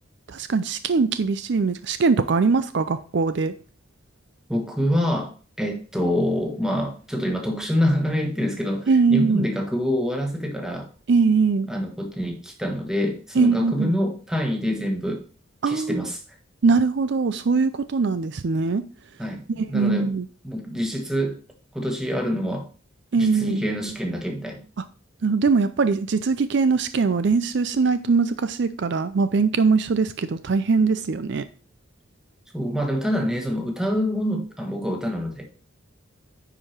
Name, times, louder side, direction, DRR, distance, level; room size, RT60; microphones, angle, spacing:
voice 1, 0.3-3.5 8.9-9.5 11.1-11.7 13.4-13.9 15.6-16.1 16.6-18.8 19.6-20.3 23.1-23.6 25.2-31.4, right 4 dB, 55° right, 0.4 m, -21 dB
voice 2, 4.5-10.9 11.7-15.2 15.7-16.2 19.2-20.1 20.4-21.4 21.7-22.7 23.2-24.6 32.5-35.5, equal, 5° right, 1.4 m, -26 dB
9.9 x 4.8 x 4.5 m
head